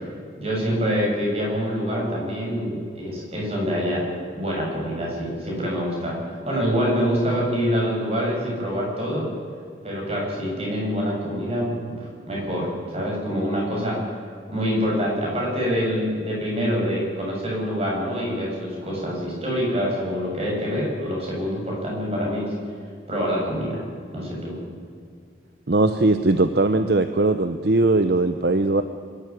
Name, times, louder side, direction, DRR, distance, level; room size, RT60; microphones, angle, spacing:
voice 1, 0.4-6.2 6.5-9.3 9.8-12.0 12.3-14.0 14.5-22.5 23.1-23.8 24.1-24.6, equal, 30° right, -3 dB, 7.6 m, -25 dB
voice 2, 25.7-28.8, right 2 dB, 55° right, 9 dB, 0.8 m, -20 dB
25.0 x 12.5 x 9.8 m, 2.2 s
head